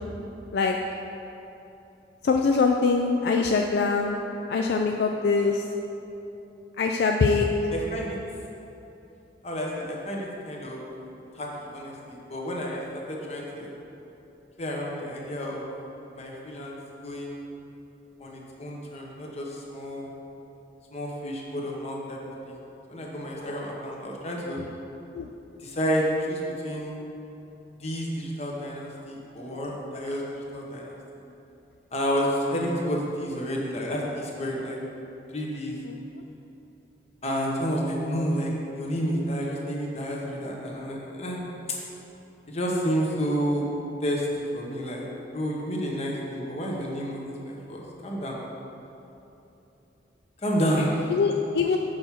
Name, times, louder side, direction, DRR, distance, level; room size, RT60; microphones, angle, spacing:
voice 1, 2.2-4.2 4.5-5.6 6.8-7.5 25.1-25.3 35.9-36.0 51.1-51.8, left 4 dB, 65° left, 2 dB, 0.3 m, -23 dB
voice 2, 7.7-8.2 9.4-10.8 11.3-12.8 13.1-13.7 14.6-15.6 16.1-16.8 17.0-17.4 18.2-20.1 20.9-22.2 22.5-22.6 22.9-24.6 25.6-26.9 27.8-31.0 31.9-34.8 35.3-35.8 37.2-41.4 41.7-41.8 42.5-43.6 44.0-44.3 44.5-45.0 45.3-48.4 50.4-51.1 51.7-51.8, equal, 35° left, -2 dB, 1.0 m, -30 dB
6.4 x 4.6 x 5.8 m, 3.0 s
head